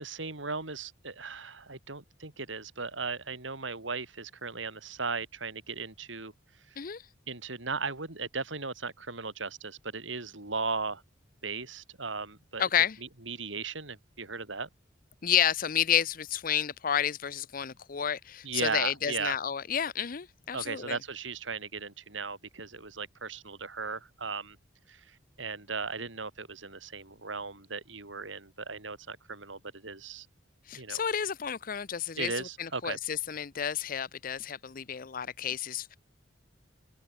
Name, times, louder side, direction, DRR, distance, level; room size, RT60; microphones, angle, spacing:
voice 1, 0.0-6.3 6.7-6.8 7.3-11.0 11.4-12.6 13.0-14.7 18.4-19.4 20.5-24.6 24.9-30.3 30.7-31.0 32.2-33.0, right 4 dB, 85° right, 3.7 m, -37 dB
voice 2, 12.6-13.0 15.2-21.0 30.7-36.0, left 9 dB, 45° left, 0.6 m, -30 dB
open air
head